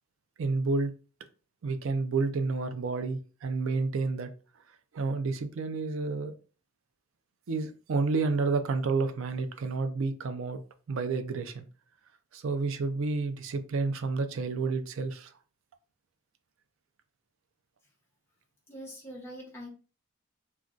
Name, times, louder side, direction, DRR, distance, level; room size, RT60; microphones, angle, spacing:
voice 1, 0.4-0.9 1.6-4.3 4.9-6.4 7.5-10.6 10.9-11.7 12.3-15.3, right 4 dB, 65° right, 8 dB, 0.4 m, -30 dB
voice 2, 18.7-19.7, equal, 10° left, -3 dB, 1.0 m, -43 dB
2.4 x 2.2 x 3.7 m, 0.36 s
head